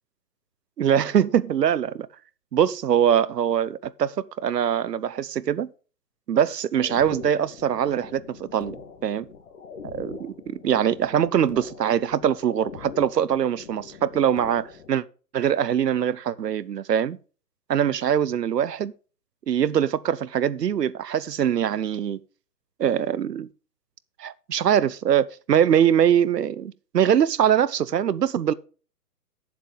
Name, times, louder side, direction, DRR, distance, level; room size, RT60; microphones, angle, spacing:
voice 1, 0.8-2.1 2.5-5.7 6.3-8.8 9.0-9.3 9.9-15.0 15.3-17.2 17.7-18.9 19.5-22.2 22.8-23.5 24.2-28.5, right 9 dB, 80° right, 0.8 m, -23 dB
sound 1, 6.7-14.9, left 6 dB, 50° left, 2.7 m, -42 dB
9.8 x 7.4 x 5.3 m
hypercardioid pair, 155°, 48 cm